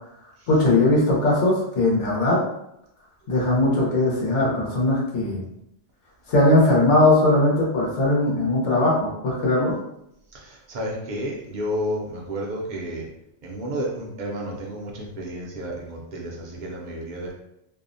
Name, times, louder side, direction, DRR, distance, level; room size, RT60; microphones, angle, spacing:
voice 1, 0.5-2.4 3.3-5.4 6.3-9.7, left 2 dB, 85° left, -3 dB, 1.1 m, -19 dB
voice 2, 10.3-13.1 13.4-17.3, equal, 55° right, -2 dB, 0.5 m, -31 dB
2.6 x 2.0 x 2.5 m, 0.79 s
omnidirectional pair, 1.2 m